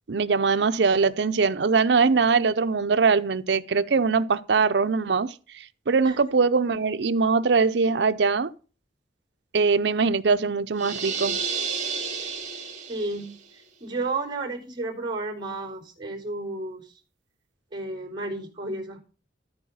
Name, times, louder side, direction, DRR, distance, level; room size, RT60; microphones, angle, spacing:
voice 1, 0.1-8.5 9.5-11.4, right 4 dB, 70° right, 0.6 m, -22 dB
sound 1, 10.8-13.3, right 5 dB, 40° right, 2.2 m, -31 dB
voice 2, 12.9-16.9 17.7-19.0, right 2 dB, 25° right, 3.5 m, -32 dB
13.5 x 4.7 x 5.5 m
head